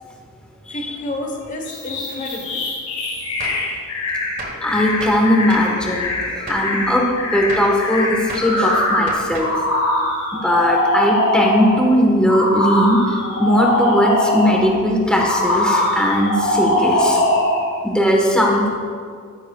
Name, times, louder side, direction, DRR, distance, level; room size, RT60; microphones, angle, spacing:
voice 1, 0.7-2.6 3.3-3.5, left 1 dB, 35° left, 2 dB, 1.0 m, -30 dB
sound 1, 1.7-11.8 12.3-14.7 15.2-17.7, left 1 dB, 80° left, 2.2 m, -22 dB
Gunshot gunfire, 3.4-3.7 4.4-4.7 5.0-5.8 6.5-6.8 7.5-7.8 8.3-8.6 9.1-9.6, right 2 dB, 40° right, 1.3 m, -32 dB
voice 2, 4.6-7.0 7.3-9.5 10.3-17.2 17.8-18.7, equal, 5° left, -1 dB, 1.1 m, -18 dB
14.0 x 9.9 x 2.3 m, 2.1 s
head